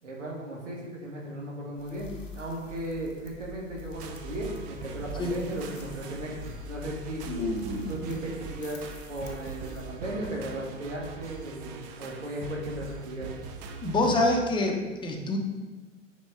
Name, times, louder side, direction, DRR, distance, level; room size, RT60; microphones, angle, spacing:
voice 1, 0.0-7.3 7.9-8.8 9.1-13.3, right 1 dB, 75° right, -1 dB, 1.8 m, -36 dB
sound 1, 1.8-9.8, left 2 dB, 85° left, 1.1 m, -45 dB
sound 2, 3.9-14.4, right 6 dB, 35° right, 0.7 m, -42 dB
voice 2, 7.3-8.0 13.8-15.4, left 2 dB, 10° left, 2 dB, 0.9 m, -27 dB
6.2 x 4.5 x 5.0 m, 1.3 s
figure-of-eight pair, 90°, 37 cm